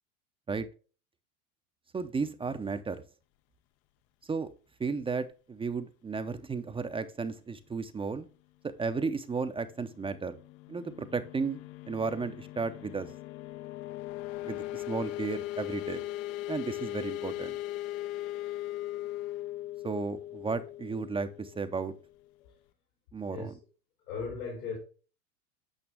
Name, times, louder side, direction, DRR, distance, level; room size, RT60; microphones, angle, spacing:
voice 1, 1.9-3.0 4.3-4.5 4.8-8.3 8.6-10.3 10.7-11.6 11.9-13.1 14.4-16.0 16.5-17.6 19.8-21.9 23.1-23.5, right 4 dB, 15° right, 0.5 m, -34 dB
sound 1, 9.7-22.3, left 15 dB, 40° left, 0.4 m, -39 dB
voice 2, 24.0-24.8, left 4 dB, 85° left, 3.5 m, -38 dB
8.8 x 6.0 x 3.4 m
hypercardioid pair, 100°, 43 cm